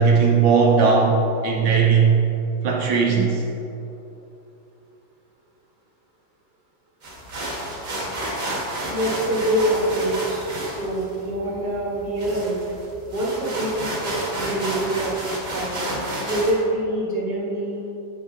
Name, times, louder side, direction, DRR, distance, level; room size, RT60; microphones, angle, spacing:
voice 1, 0.0-2.2 2.6-3.4, right 5 dB, 75° right, -1 dB, 1.5 m, -17 dB
sound 1, 7.0-16.6, right 1 dB, 45° right, 1.7 m, -31 dB
voice 2, 8.9-12.6 13.1-15.1 15.5-16.0 16.2-17.8, right 1 dB, 25° right, -7 dB, 1.7 m, -25 dB
8.5 x 5.6 x 3.7 m, 2.9 s
omnidirectional pair, 2.1 m